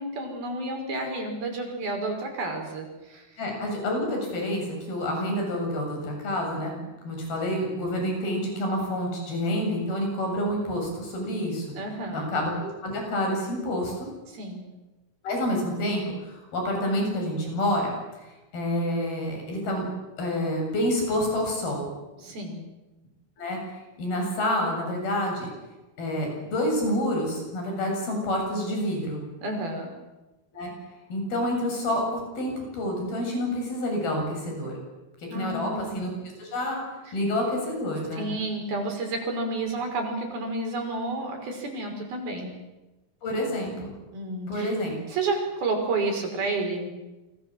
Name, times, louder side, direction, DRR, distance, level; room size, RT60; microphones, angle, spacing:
voice 1, 0.0-3.3 11.8-12.3 14.3-14.6 22.2-22.7 29.4-29.9 35.3-36.0 38.2-42.5 44.1-44.7 45.1-46.9, right 2 dB, 85° right, 3 dB, 7.4 m, -30 dB
voice 2, 3.4-6.7 7.0-11.7 12.1-14.1 15.2-18.0 18.5-19.9 20.2-21.9 23.4-23.6 24.0-25.5 26.0-29.2 30.5-30.7 31.1-34.7 35.3-36.1 36.4-36.8 37.1-38.3 43.2-43.9 44.5-44.9, left 1 dB, 85° left, 1 dB, 9.6 m, -28 dB
29.0 x 25.0 x 7.7 m, 1.1 s
omnidirectional pair, 4.2 m